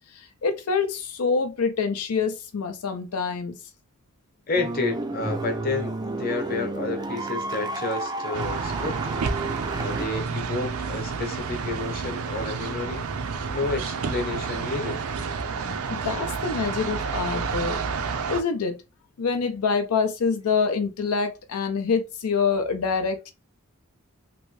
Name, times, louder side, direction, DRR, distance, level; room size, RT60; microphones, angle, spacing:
voice 1, 0.1-3.6 15.6-17.8 18.3-18.8 19.2-23.3, left 5 dB, 90° left, 0.5 m, -26 dB
voice 2, 4.5-9.3 9.8-13.1 13.5-15.1, left 3 dB, 40° left, 0.8 m, -30 dB
sound 1, 4.5-10.1, right 2 dB, 20° right, 0.3 m, -31 dB
sound 2, 8.3-18.4, right 5 dB, 80° right, 0.5 m, -30 dB
3.0 x 2.6 x 3.1 m
head